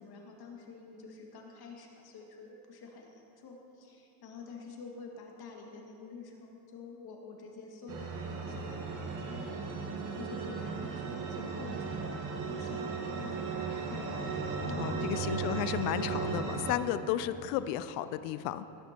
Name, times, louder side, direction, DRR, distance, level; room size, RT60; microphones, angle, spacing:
voice 1, 0.0-12.0 12.4-13.4 13.7-15.1, left 5 dB, 50° left, 0 dB, 2.1 m, -48 dB
sound 1, 7.9-16.8, right 5 dB, 40° right, 1.7 m, -36 dB
voice 2, 14.8-18.7, left 12 dB, 75° left, 13 dB, 0.6 m, -33 dB
18.0 x 9.8 x 3.0 m, 2.9 s
supercardioid pair, 95°, 49 cm